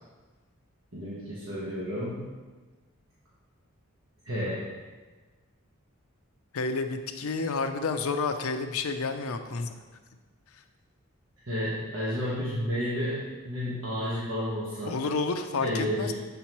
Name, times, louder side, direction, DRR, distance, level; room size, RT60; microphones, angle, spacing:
voice 1, 0.9-2.3 4.2-4.6 11.4-15.0 15.6-16.1, equal, 80° right, -9 dB, 1.4 m, -31 dB
voice 2, 6.5-9.8 14.8-16.1, left 4 dB, 85° left, 7 dB, 0.5 m, -30 dB
7.3 x 5.7 x 3.0 m, 1.3 s
head